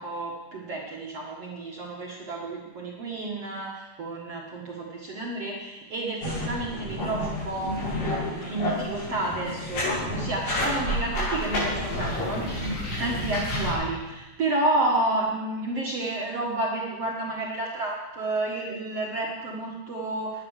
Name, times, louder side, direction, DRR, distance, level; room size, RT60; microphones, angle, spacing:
voice 1, 0.0-12.6 13.0-20.4, right 2 dB, 85° right, -3 dB, 1.3 m, -30 dB
sound 1, 6.2-13.7, left 1 dB, 55° left, 9.9 m, -30 dB
19.5 x 10.5 x 6.6 m, 1.1 s
omnidirectional pair, 5.8 m